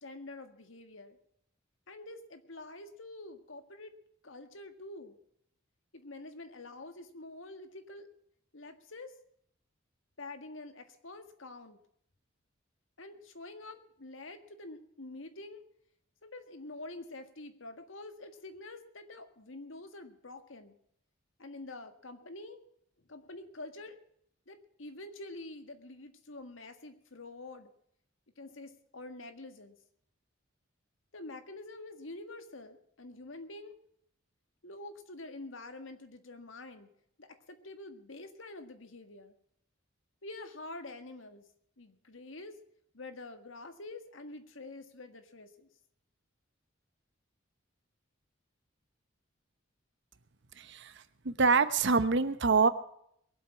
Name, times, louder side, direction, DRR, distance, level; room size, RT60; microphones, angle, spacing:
voice 1, 0.0-1.2 1.9-3.9 4.2-5.2 5.9-8.1 8.5-9.1 10.2-11.8 13.0-15.6 16.2-20.8 21.4-22.6 23.1-24.0 24.5-27.7 28.4-29.8 31.1-33.8 34.6-36.9 37.2-39.3 40.2-41.4 41.8-42.6 42.9-45.7, left 2 dB, 75° left, 8 dB, 1.7 m, -47 dB
voice 2, 50.6-50.9 51.2-52.7, right 4 dB, 65° right, 13 dB, 1.0 m, -25 dB
22.0 x 8.2 x 5.9 m, 0.71 s
head